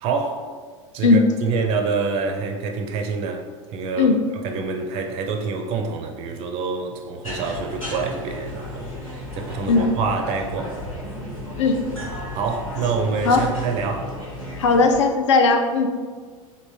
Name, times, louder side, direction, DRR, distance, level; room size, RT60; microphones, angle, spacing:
voice 1, 0.0-0.5 0.9-3.5 3.7-4.1 4.4-10.7 12.3-14.1, right 5 dB, 35° right, 4 dB, 0.4 m, -26 dB
sound 1, 7.2-15.0, left 1 dB, 90° left, 1.0 m, -34 dB
voice 2, 14.6-15.9, left 4 dB, 60° left, 5 dB, 0.4 m, -17 dB
3.5 x 2.5 x 3.1 m, 1.5 s
figure-of-eight pair, 80°, 17 cm